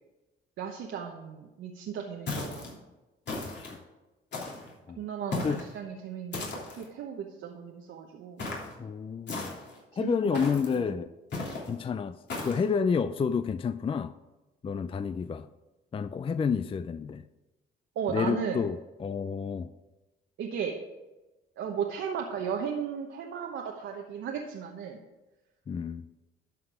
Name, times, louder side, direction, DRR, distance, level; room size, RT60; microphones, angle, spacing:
voice 1, 0.6-2.8 5.0-8.5 10.0-10.4 10.7-10.9 17.9-18.6 20.4-20.7 21.6-25.0, right 7 dB, 80° right, 1.0 m, -35 dB
sound 1, 2.3-2.7 3.3-3.8 4.3-4.7 5.3-5.7 6.3-6.9 8.4-8.7 9.3-9.8 10.3-10.8 11.3-11.7 12.3-12.6, left 3 dB, 60° left, 3.2 m, -36 dB
voice 2, 8.8-9.5 10.0-11.1 11.7-14.1 14.6-15.5 15.9-17.2 18.1-19.7 25.7-26.1, left 6 dB, 30° left, 0.4 m, -30 dB
12.0 x 6.0 x 4.9 m
cardioid pair, 90°, 20 cm